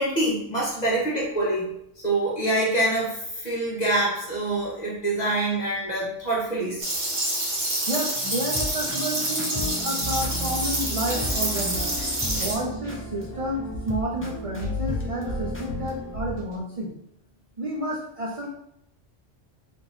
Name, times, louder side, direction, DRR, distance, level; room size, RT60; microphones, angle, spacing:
voice 1, 0.0-1.7 2.0-6.8 12.3-12.5, right 1 dB, 35° left, -5 dB, 1.3 m, -25 dB
sound 1, 6.8-12.5, right 1 dB, 70° right, 1.6 m, -27 dB
voice 2, 7.9-11.9 12.4-16.9 17.6-18.5, right 1 dB, 45° right, -2 dB, 0.5 m, -30 dB
sound 2, 8.1-16.2, left 1 dB, 20° left, 0.4 m, -36 dB
sound 3, 10.0-16.6, left 1 dB, 55° left, 1.4 m, -35 dB
3.6 x 2.9 x 4.0 m, 0.77 s
omnidirectional pair, 1.2 m